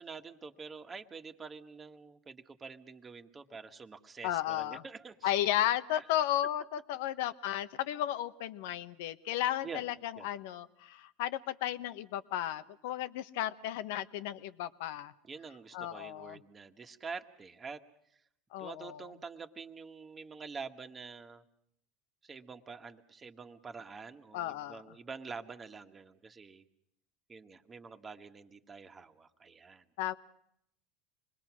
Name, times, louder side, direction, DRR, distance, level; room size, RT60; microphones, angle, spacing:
voice 1, 0.0-5.4 5.9-6.0 9.6-9.8 10.2-10.3 15.2-17.8 18.1-18.2 18.6-21.4 22.2-26.6 27.3-29.8, right 5 dB, 25° right, 7 dB, 1.7 m, -47 dB
voice 2, 4.2-4.8 5.2-15.1 15.7-16.4 18.5-19.1 24.3-24.8 30.0-30.1, left 12 dB, 75° left, 13 dB, 1.0 m, -34 dB
26.0 x 21.0 x 6.2 m, 0.72 s
supercardioid pair, 100°, 0 cm